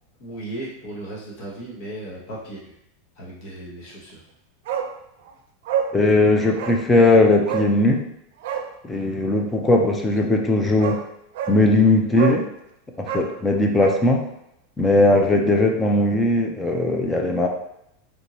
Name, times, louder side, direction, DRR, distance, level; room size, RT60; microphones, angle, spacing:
voice 1, 0.2-2.7 3.1-4.2, right 1 dB, 45° left, -5 dB, 1.3 m, -36 dB
Bark, 4.6-4.9 5.2-5.3 5.6-5.9 6.5-6.8 7.4-7.7 8.4-8.7 10.3-10.4 10.8-11.0 11.3-11.6 12.1-12.4 13.0-14.0 14.3-14.4, right 8 dB, 65° right, 0.5 m, -27 dB
voice 2, 5.9-8.0 8.8-11.0 11.5-12.4 13.0-14.2 14.8-17.5, left 2 dB, 10° left, 2 dB, 0.4 m, -18 dB
3.4 x 2.6 x 3.0 m, 0.80 s
supercardioid pair, 160°, 0 cm